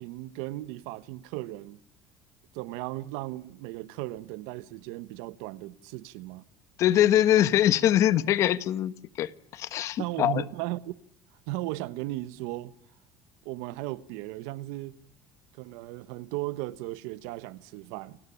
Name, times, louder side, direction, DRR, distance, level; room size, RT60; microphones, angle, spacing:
voice 1, 0.0-1.8 2.5-6.4 10.0-10.9 11.5-12.7 13.4-15.0 15.5-18.2, right 18 dB, 85° right, 1.2 m, -36 dB
voice 2, 6.8-10.4, left 12 dB, 55° left, 1.4 m, -23 dB
29.5 x 17.5 x 10.0 m
cardioid pair, 115°, 6 cm